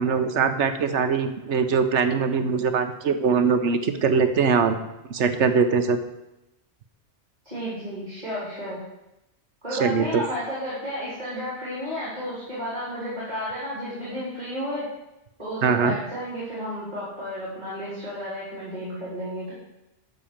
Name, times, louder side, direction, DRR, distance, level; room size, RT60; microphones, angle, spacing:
voice 1, 0.0-4.8 5.1-6.0 9.8-10.2 15.6-15.9, right 5 dB, 80° right, 8 dB, 1.2 m, -22 dB
voice 2, 7.4-8.8 9.6-14.9 15.4-19.5, equal, 40° right, -9 dB, 3.9 m, -32 dB
12.0 x 4.5 x 7.3 m, 0.92 s
omnidirectional pair, 1.2 m